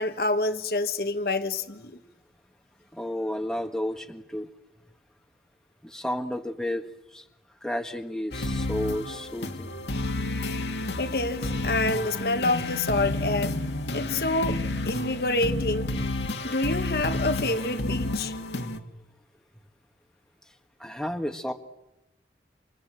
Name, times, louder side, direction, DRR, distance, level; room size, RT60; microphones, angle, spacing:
voice 1, 0.0-2.0 11.0-13.6 13.9-14.6 14.9-15.9 16.4-18.3, left 2 dB, 55° left, 1.4 m, -27 dB
voice 2, 2.9-4.5 5.8-6.8 7.1-7.2 7.6-9.7 20.8-21.5, left 1 dB, 5° left, 1.6 m, -32 dB
sound 1, 8.3-18.8, left 2 dB, 85° left, 2.3 m, -30 dB
27.5 x 27.5 x 7.6 m
head